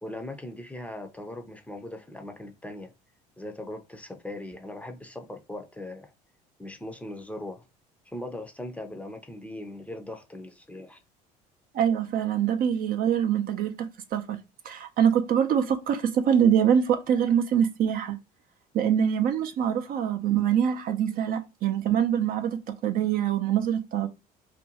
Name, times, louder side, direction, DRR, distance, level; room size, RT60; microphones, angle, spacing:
voice 1, 0.0-2.9 3.4-6.1 6.6-7.7 8.1-11.0, left 1 dB, 5° left, 0.5 m, -39 dB
voice 2, 11.7-18.2 18.7-24.1, right 8 dB, 50° right, 0.5 m, -24 dB
2.5 x 2.2 x 2.8 m
hypercardioid pair, 65°, 19 cm